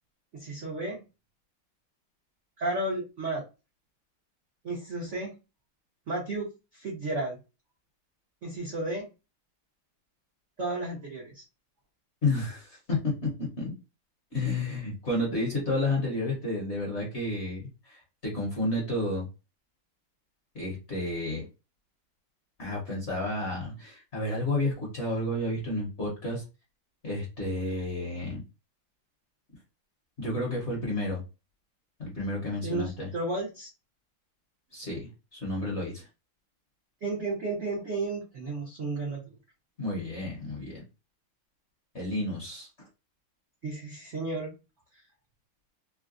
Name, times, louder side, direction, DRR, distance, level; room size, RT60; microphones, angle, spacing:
voice 1, 0.3-1.0 2.6-3.4 4.6-5.3 6.1-7.4 8.4-9.1 10.6-11.4 32.6-33.7 37.0-39.3 43.6-44.5, right 2 dB, 60° right, -3 dB, 0.7 m, -33 dB
voice 2, 12.2-13.7 14.3-19.3 20.5-21.4 22.6-26.4 27.0-28.4 30.2-31.2 32.0-33.1 34.7-36.1 39.8-40.8 41.9-42.7, left 2 dB, 45° left, -4 dB, 1.0 m, -31 dB
3.8 x 2.1 x 2.5 m, 0.28 s
omnidirectional pair, 2.3 m